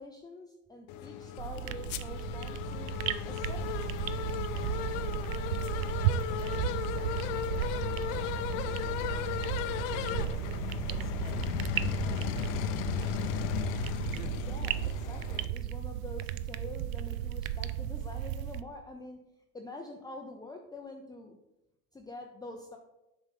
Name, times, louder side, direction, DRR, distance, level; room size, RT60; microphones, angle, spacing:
voice 1, 0.0-2.9 3.3-3.9 14.4-19.2 19.5-21.4 21.9-22.8, left 2 dB, 10° left, 2 dB, 0.5 m, -46 dB
sound 1, 0.9-15.5, left 10 dB, 65° left, 0.6 m, -35 dB
sound 2, 1.4-18.6, right 12 dB, 75° right, 0.5 m, -35 dB
voice 2, 5.9-9.4 10.0-12.5, right 2 dB, 30° right, 3 dB, 1.6 m, -55 dB
7.2 x 5.2 x 3.6 m, 0.92 s
hypercardioid pair, 95°, 41 cm